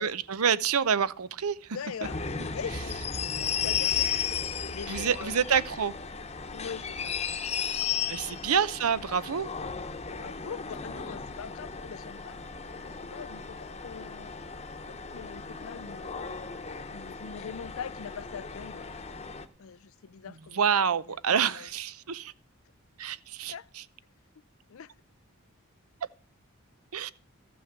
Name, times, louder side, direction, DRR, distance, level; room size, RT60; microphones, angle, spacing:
voice 1, 0.0-1.8 4.9-5.9 8.1-9.5 20.2-22.3 23.0-23.8 26.9-27.1, right 7 dB, 85° right, 0.7 m, -28 dB
voice 2, 1.7-2.2 2.5-3.0 3.4-4.4 4.7-5.6 6.5-7.0 7.6-7.7 8.2-8.4 10.1-12.4 12.8-14.3 14.9-16.4 16.9-18.8 19.6-20.6 21.5-21.7 23.5-23.7 24.7-24.9, left 7 dB, 70° left, 0.4 m, -42 dB
sound 1, 2.0-19.4, left 6 dB, 30° left, 0.9 m, -35 dB
14.0 x 6.3 x 5.8 m
head